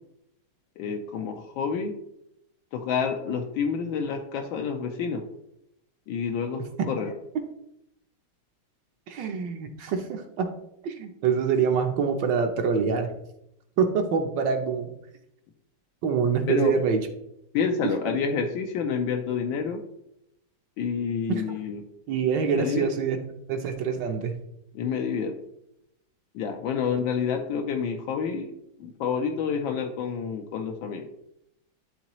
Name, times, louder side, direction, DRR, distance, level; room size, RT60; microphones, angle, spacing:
voice 1, 0.8-1.9 2.7-5.2 6.1-7.1 16.5-16.7 17.5-19.8 20.8-21.8 22.5-22.9 24.7-25.4 26.3-28.5 28.8-31.0, left 6 dB, 75° left, 3 dB, 1.4 m, -28 dB
voice 2, 9.1-10.5 10.8-13.1 13.8-14.9 16.0-17.0 17.8-17.9 21.3-21.5 22.1-23.2 23.5-24.4, right 6 dB, 70° right, 5 dB, 1.4 m, -25 dB
11.5 x 3.8 x 3.0 m, 0.81 s
omnidirectional pair, 2.2 m